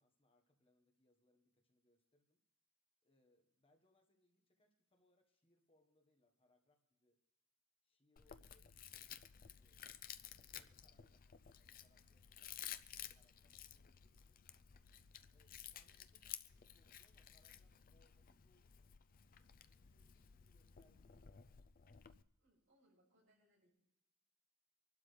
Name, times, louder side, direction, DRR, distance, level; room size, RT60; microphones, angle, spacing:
voice 1, 0.0-2.4 3.0-7.2 7.8-9.1 9.4-9.8 10.3-14.4 15.3-19.0 19.7-21.6, left 1 dB, 25° left, 3 dB, 1.4 m, -79 dB
Chewing mastication, 8.2-22.2, left 10 dB, 40° left, 0.5 m, -55 dB
voice 2, 22.4-23.7, right 1 dB, 60° right, -4 dB, 7.1 m, -75 dB
25.0 x 12.0 x 3.4 m, 0.84 s
head